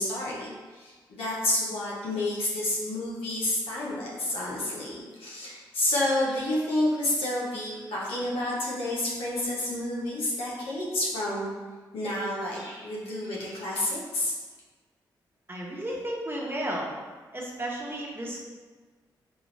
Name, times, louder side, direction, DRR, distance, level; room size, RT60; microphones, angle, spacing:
voice 1, 0.0-11.5 11.9-14.3, left 1 dB, 80° left, -5 dB, 1.0 m, -29 dB
voice 2, 15.5-17.0 17.3-18.4, right 1 dB, 25° right, -3 dB, 1.1 m, -33 dB
4.4 x 2.5 x 3.3 m, 1.4 s
supercardioid pair, 40°, 9 cm